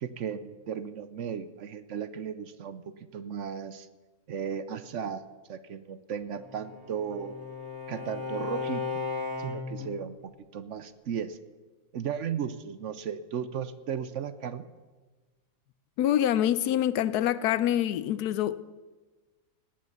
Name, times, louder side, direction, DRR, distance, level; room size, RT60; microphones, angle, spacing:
voice 1, 0.0-2.8 3.1-3.9 4.3-5.2 5.5-7.4 7.9-8.8 9.4-11.4 11.9-14.7, right 7 dB, 60° right, 0.9 m, -35 dB
Bowed string instrument, 6.3-9.9, left 4 dB, 15° right, 3.3 m, -36 dB
voice 2, 16.0-18.6, left 11 dB, 80° left, 1.2 m, -26 dB
18.0 x 8.8 x 6.7 m
omnidirectional pair, 1.7 m